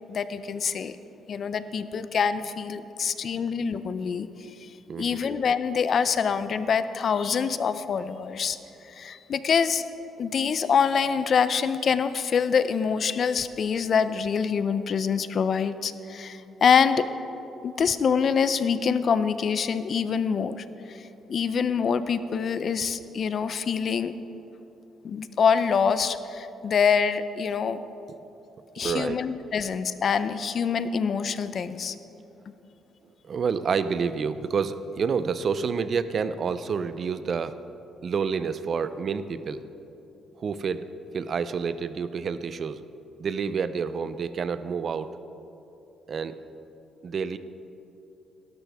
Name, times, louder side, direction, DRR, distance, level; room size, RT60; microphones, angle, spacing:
voice 1, 0.1-1.0 1.3-4.3 4.6-4.7 5.0-8.6 8.9-9.8 10.2-17.1 17.6-21.0 21.3-24.1 25.0-27.8 28.8-32.0, left 6 dB, 55° left, 13 dB, 0.5 m, -25 dB
voice 2, 4.9-5.2 28.8-29.4 33.3-37.6 38.0-39.6 40.4-40.9 41.1-42.8 43.2-45.2 46.1-46.4 47.0-47.4, right 6 dB, 50° right, 13 dB, 0.5 m, -28 dB
17.5 x 12.5 x 3.6 m, 3.0 s
cardioid pair, 90°, 0 cm